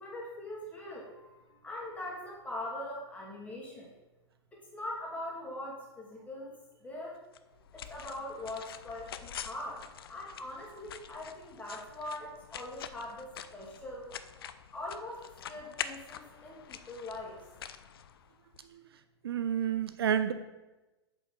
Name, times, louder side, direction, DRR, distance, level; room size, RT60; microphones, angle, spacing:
voice 1, 0.0-3.9 4.5-6.5 6.8-7.2 7.7-14.1 14.7-17.4, left 1 dB, 10° left, -4 dB, 2.3 m, -42 dB
sound 1, 7.3-18.6, left 9 dB, 60° left, 0.5 m, -46 dB
voice 2, 18.6-20.3, right 9 dB, 60° right, 11 dB, 0.4 m, -31 dB
7.7 x 5.1 x 5.3 m, 1.1 s
figure-of-eight pair, 100°, 14 cm